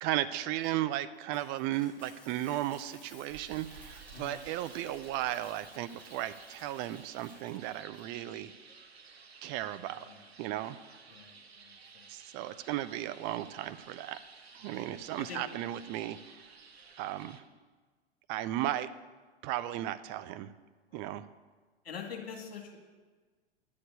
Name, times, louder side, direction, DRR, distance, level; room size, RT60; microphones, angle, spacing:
voice 1, 0.0-8.5 9.4-10.0 10.4-10.8 12.1-14.2 14.5-16.2 17.0-17.4 18.3-18.9 19.4-20.5 20.9-21.2, right 13 dB, 35° right, 13 dB, 0.6 m, -35 dB
Coin (dropping), 0.6-8.0, left 2 dB, 5° left, 3.2 m, -57 dB
sound 1, 3.3-17.4, right 5 dB, 80° right, 1.0 m, -54 dB
voice 2, 9.9-10.2 11.1-12.0 14.6-15.4 20.9-21.1 21.8-22.8, left 7 dB, 70° left, 1 dB, 2.4 m, -46 dB
10.5 x 6.8 x 8.2 m, 1.4 s
figure-of-eight pair, 95°, 31 cm